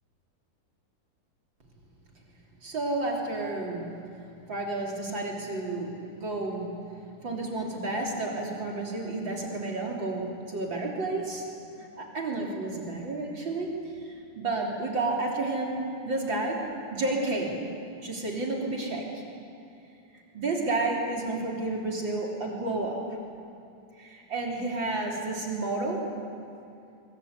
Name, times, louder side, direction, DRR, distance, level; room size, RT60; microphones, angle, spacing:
voice 1, 2.6-4.1 4.5-6.8 7.2-11.5 11.8-13.8 14.4-16.7 16.9-17.6 18.0-19.1 20.3-23.0 24.0-26.1, right 2 dB, 40° right, -1 dB, 4.0 m, -31 dB
23.5 x 23.0 x 8.3 m, 2.6 s
omnidirectional pair, 3.5 m